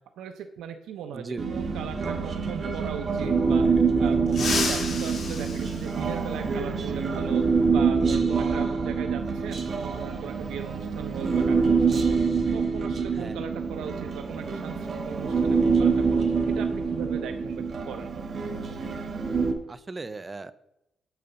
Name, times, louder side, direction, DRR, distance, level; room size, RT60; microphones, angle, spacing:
voice 1, 0.2-3.7 4.0-7.5 7.7-12.2 12.5-18.1, right 8 dB, 90° right, 6 dB, 0.5 m, -38 dB
voice 2, 1.1-1.5 4.4-4.7 13.2-13.4 19.7-20.5, right 3 dB, 20° right, 15 dB, 0.4 m, -36 dB
Human voice, 1.4-19.5, right 5 dB, 40° right, 1.0 m, -26 dB
sound 1, 4.3-6.7 8.3-8.4 9.7-9.8 11.4-11.5 11.9-12.1 12.6-14.8 15.0-15.3 15.7-16.2, left 4 dB, 55° left, 2.4 m, -34 dB
8.8 x 4.0 x 6.7 m, 0.84 s
cardioid pair, 150°, 0 cm